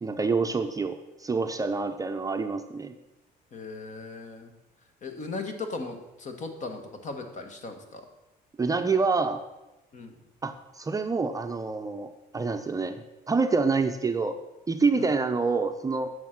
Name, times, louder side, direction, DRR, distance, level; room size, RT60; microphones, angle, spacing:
voice 1, 0.0-2.9 8.6-9.4 10.4-14.4 14.7-16.1, right 4 dB, 20° right, 7 dB, 0.6 m, -27 dB
voice 2, 3.5-4.5 5.0-8.0 9.9-10.1 15.0-15.1, left 3 dB, 45° left, 6 dB, 1.6 m, -37 dB
9.3 x 6.5 x 6.0 m, 1.0 s
cardioid pair, 110°, 17 cm